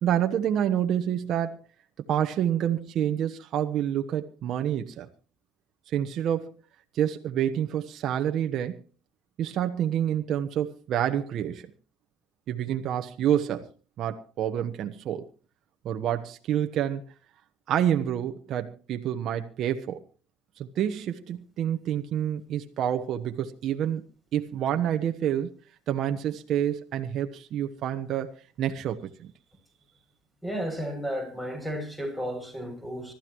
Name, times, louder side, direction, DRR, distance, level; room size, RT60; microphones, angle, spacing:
voice 1, 0.0-1.6 2.1-5.1 5.9-6.5 6.9-8.8 9.4-11.7 12.5-13.7 14.0-15.3 15.8-17.0 17.7-20.0 20.6-24.0 24.3-25.5 25.9-29.3, right 10 dB, 55° right, 6 dB, 1.1 m, -28 dB
voice 2, 30.4-33.1, equal, 5° left, 5 dB, 7.3 m, -33 dB
25.5 x 13.0 x 3.1 m, 0.36 s
supercardioid pair, 100°, 0 cm